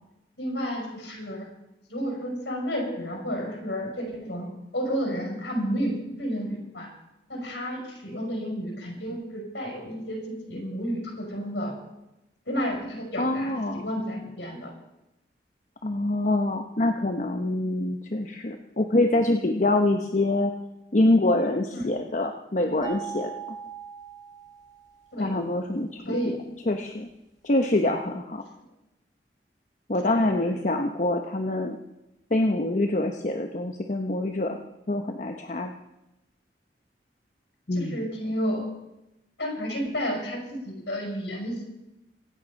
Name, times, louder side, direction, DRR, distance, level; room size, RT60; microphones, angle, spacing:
voice 1, 0.4-1.5 1.9-6.9 7.3-11.8 12.5-14.7 21.7-21.9 25.1-25.3 26.0-26.3 30.1-30.4 37.7-38.7 39.4-41.7, equal, 85° left, 0 dB, 5.8 m, -31 dB
voice 2, 13.2-13.9 15.8-20.5 20.9-23.3 25.2-26.4 26.7-27.1 27.4-28.4 29.9-31.8 32.3-34.6 34.9-35.7 37.7-38.0, left 2 dB, 45° left, 4 dB, 0.9 m, -25 dB
sound 1, 22.8-25.1, right 7 dB, 20° right, 3.6 m, -40 dB
24.5 x 9.0 x 5.3 m, 0.92 s
head